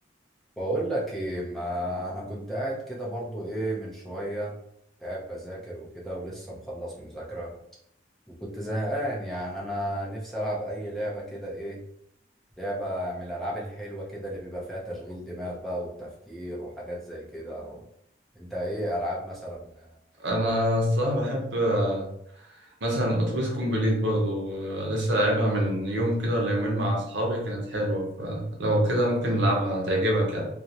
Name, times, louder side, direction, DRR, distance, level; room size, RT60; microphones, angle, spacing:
voice 1, 0.6-4.6 5.0-7.5 8.4-11.8 12.6-17.8 18.3-19.9 21.1-21.2, right 1 dB, ahead, -5 dB, 0.5 m, -33 dB
voice 2, 20.2-22.1 22.8-30.5, equal, 80° right, -1 dB, 0.7 m, -25 dB
2.4 x 2.0 x 2.7 m, 0.72 s
head